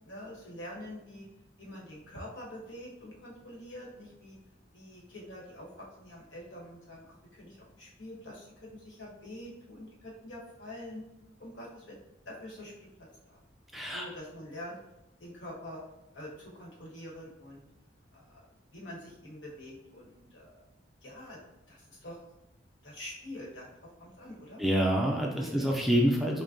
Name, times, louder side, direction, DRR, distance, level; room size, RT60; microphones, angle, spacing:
voice 1, 0.0-1.3 1.6-4.4 4.7-7.1 7.3-11.0 11.4-12.0 12.2-12.9 13.2-13.4 13.9-14.8 15.2-15.8 16.1-17.6 18.1-20.6 21.0-21.4 21.7-22.2 22.8-23.7 24.0-24.6 25.3-25.8, left 1 dB, 75° left, -4 dB, 1.3 m, -45 dB
voice 2, 13.7-14.1 24.6-26.4, equal, ahead, -1 dB, 0.3 m, -27 dB
6.1 x 2.1 x 2.6 m, 0.93 s
head